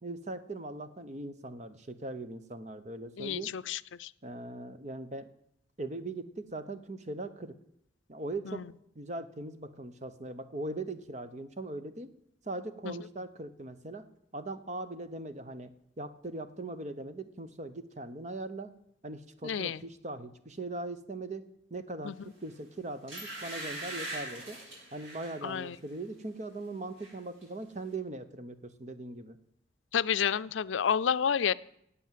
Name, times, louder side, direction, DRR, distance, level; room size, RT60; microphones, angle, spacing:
voice 1, 0.0-3.5 4.2-5.3 5.8-7.6 8.1-8.7 8.9-12.1 12.4-14.0 14.3-18.7 19.0-21.4 21.7-22.1 22.4-24.6 24.9-29.4, right 2 dB, 35° right, 11 dB, 0.9 m, -40 dB
voice 2, 3.2-4.1 8.5-8.7 12.8-12.9 19.4-19.8 22.0-22.1 25.4-25.8 29.9-31.5, left 7 dB, 80° left, 16 dB, 0.5 m, -30 dB
sound 1, 22.4-22.6 23.1-25.4 25.9-26.1 26.4-27.1 27.4-27.5, right 1 dB, 90° right, 7.2 m, -41 dB
17.5 x 8.4 x 7.6 m, 0.75 s
head